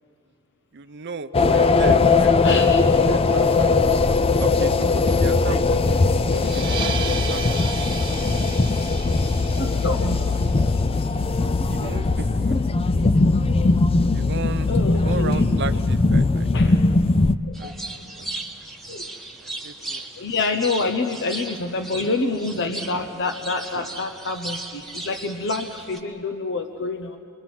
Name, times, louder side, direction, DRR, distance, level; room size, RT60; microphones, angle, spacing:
voice 1, 0.7-2.7 3.0-3.7 4.1-7.0 7.3-7.7 11.7-12.7 14.1-16.8 17.6-18.3 19.6-20.0, right 4 dB, 55° right, 11 dB, 0.7 m, -35 dB
sound 1, 1.3-17.4, left 3 dB, 25° left, 0.4 m, -20 dB
voice 2, 2.4-2.8 3.3-3.4 9.6-10.2 13.5-13.6 14.7-15.4 15.7-15.8 16.5-16.8 17.4-17.6 18.9-19.1 20.2-27.2, left 3 dB, 60° left, 6 dB, 0.8 m, -27 dB
sound 2, 6.3-11.5, right 7 dB, 25° right, 1.2 m, -35 dB
sound 3, 17.5-26.0, right 2 dB, ahead, 1.4 m, -36 dB
28.0 x 22.5 x 6.0 m, 2.6 s
head